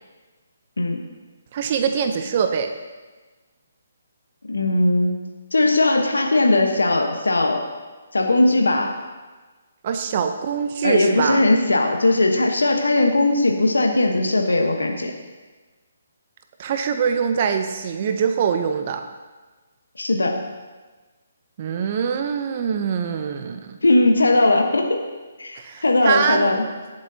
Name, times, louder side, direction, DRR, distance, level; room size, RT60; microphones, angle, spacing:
voice 1, 1.5-2.7 9.8-11.4 16.6-19.0 21.6-23.8 25.6-26.5, right 7 dB, 40° right, 7 dB, 0.7 m, -23 dB
voice 2, 4.5-5.2 5.5-7.6 8.1-8.9 10.8-15.1 20.0-20.4 23.8-25.1 25.4-26.6, left 2 dB, 85° left, 3 dB, 1.2 m, -19 dB
18.0 x 7.6 x 2.8 m, 1.3 s
figure-of-eight pair, 145°, 0 cm